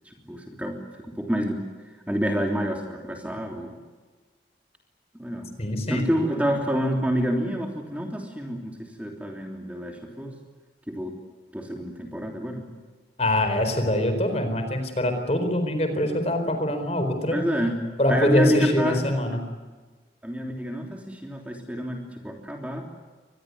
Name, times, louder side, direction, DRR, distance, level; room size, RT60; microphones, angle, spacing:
voice 1, 0.1-1.6 2.1-3.8 5.1-5.5 5.9-10.3 10.9-11.1 11.5-12.6 17.3-17.8 18.1-19.0 20.2-22.9, equal, 10° right, 1 dB, 3.2 m, -28 dB
voice 2, 5.6-6.1 13.2-17.4 18.0-19.4, left 1 dB, 35° left, 7 dB, 4.3 m, -24 dB
25.0 x 20.5 x 9.5 m, 1.3 s
head